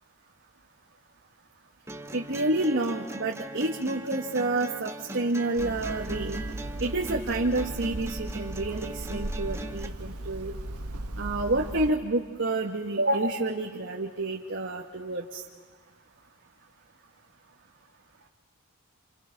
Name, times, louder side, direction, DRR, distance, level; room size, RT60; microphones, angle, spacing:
sound 1, 1.9-9.9, right 2 dB, 10° right, 1.2 m, -40 dB
voice 1, 2.1-6.4 6.8-10.5 11.2-15.4, right 2 dB, 50° right, 0 dB, 1.7 m, -29 dB
Hammer, 5.6-11.9, right 1 dB, 85° right, 1.4 m, -37 dB
29.5 x 28.5 x 6.0 m, 1.4 s
head